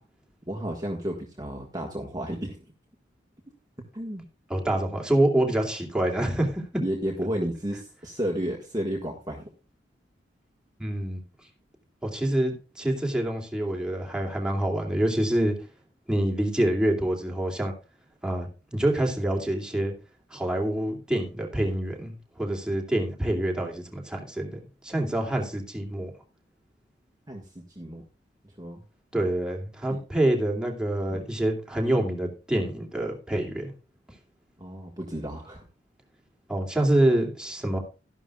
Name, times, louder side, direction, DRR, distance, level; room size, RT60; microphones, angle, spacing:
voice 1, 0.5-2.6 3.9-4.2 6.8-9.5 27.3-28.0 28.6-28.8 29.9-30.0 31.1-31.2 34.6-35.6, equal, 20° right, 0 dB, 1.6 m, -32 dB
voice 2, 4.5-6.6 10.8-11.2 12.0-15.5 16.1-17.7 18.2-19.9 20.3-26.1 29.1-33.7 36.5-37.8, right 1 dB, 5° right, 0 dB, 2.6 m, -26 dB
13.0 x 11.5 x 2.4 m, 0.32 s
head